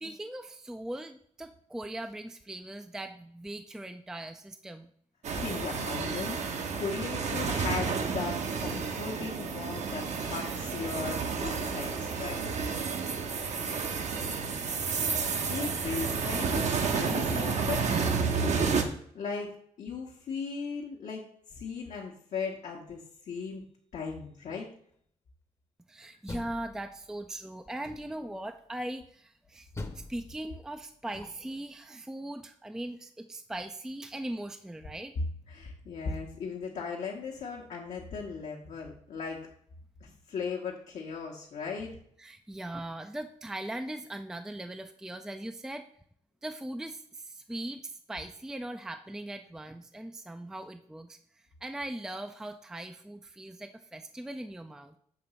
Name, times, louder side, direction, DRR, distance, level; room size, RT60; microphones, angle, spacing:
voice 1, 0.0-4.9 25.9-29.7 29.9-35.2 42.2-45.9 46.4-55.0, right 1 dB, 5° right, 7 dB, 0.4 m, -40 dB
sound 1, 5.2-18.8, right 5 dB, 60° right, 0.9 m, -31 dB
voice 2, 5.3-12.4 15.5-19.5 19.8-21.2 21.5-23.6 23.9-24.7 35.5-39.4 40.0-42.0, left 5 dB, 70° left, -3 dB, 1.1 m, -37 dB
Door, 26.0-27.3 27.8-28.4 29.7-31.6, left 2 dB, 20° left, 0.8 m, -44 dB
6.8 x 2.9 x 5.5 m, 0.64 s
cardioid pair, 95°, 13 cm